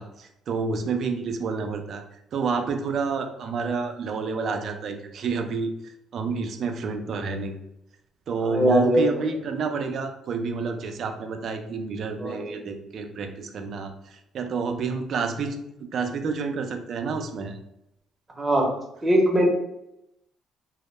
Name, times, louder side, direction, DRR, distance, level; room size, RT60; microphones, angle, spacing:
voice 1, 0.0-7.6 8.3-15.6 15.9-17.6, right 4 dB, 60° right, 6 dB, 0.3 m, -29 dB
voice 2, 8.4-9.0 12.2-12.4 18.4-18.7 19.0-19.5, right 1 dB, 20° right, 0 dB, 0.6 m, -21 dB
2.0 x 2.0 x 3.1 m, 0.83 s
cardioid pair, 100°, 0 cm